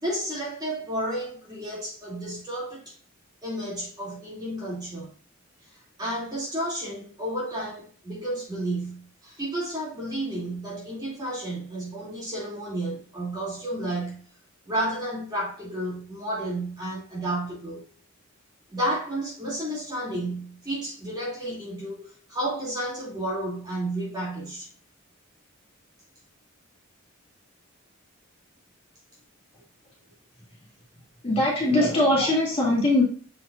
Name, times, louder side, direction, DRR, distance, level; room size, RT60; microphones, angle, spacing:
voice 1, 0.0-3.0 3.4-5.1 6.0-14.3 14.7-17.8 18.7-24.7 31.8-31.9 32.2-32.3, right 1 dB, 20° right, -5 dB, 2.7 m, -31 dB
voice 2, 31.2-33.0, left 1 dB, 30° left, -4 dB, 2.6 m, -21 dB
7.4 x 6.0 x 2.5 m, 0.42 s
head